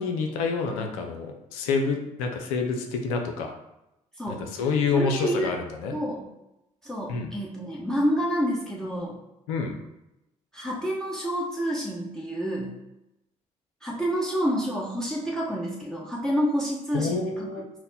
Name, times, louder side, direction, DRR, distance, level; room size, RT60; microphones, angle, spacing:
voice 1, 0.0-3.5 4.3-5.6 5.8-5.9 7.1-7.3 9.5-9.8 16.9-17.6, left 4 dB, 85° left, 3 dB, 0.5 m, -27 dB
voice 2, 4.1-4.5 4.9-5.5 5.9-6.2 6.8-9.2 10.5-12.7 13.8-17.6, equal, 5° left, -4 dB, 0.9 m, -28 dB
4.1 x 2.0 x 4.0 m, 0.89 s
hypercardioid pair, 50°, 17 cm